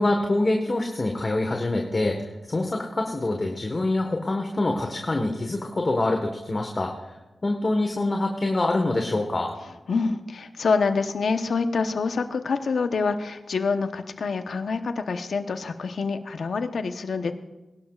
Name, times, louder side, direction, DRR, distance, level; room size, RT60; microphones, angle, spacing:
voice 1, 0.0-9.5, left 2 dB, 40° left, 2 dB, 1.4 m, -25 dB
voice 2, 9.9-17.3, left 4 dB, 75° left, 8 dB, 0.9 m, -26 dB
22.0 x 12.0 x 2.4 m, 1.0 s
cardioid pair, 60°, 0 cm